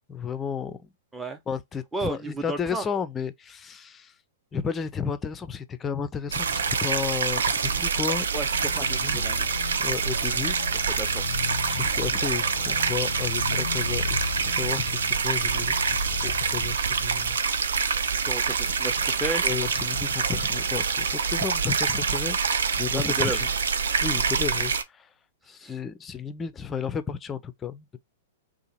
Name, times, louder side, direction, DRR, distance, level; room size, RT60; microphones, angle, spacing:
voice 1, 0.1-0.9 1.5-4.1 4.5-8.3 8.8-9.2 9.8-10.6 11.7-17.4 19.4-22.4 22.8-23.3 24.0-25.1 25.5-28.0, left 6 dB, 20° left, 0.5 m, -33 dB
voice 2, 1.9-2.9 8.3-9.5 10.9-11.3 18.3-19.5 22.9-23.4 25.6-25.8, right 1 dB, 10° right, 0.8 m, -33 dB
sound 1, 6.3-24.8, right 5 dB, 75° right, 0.5 m, -26 dB
sound 2, 8.5-16.8, left 7 dB, 75° left, 0.4 m, -36 dB
2.8 x 2.5 x 4.1 m
figure-of-eight pair, 110°, 0 cm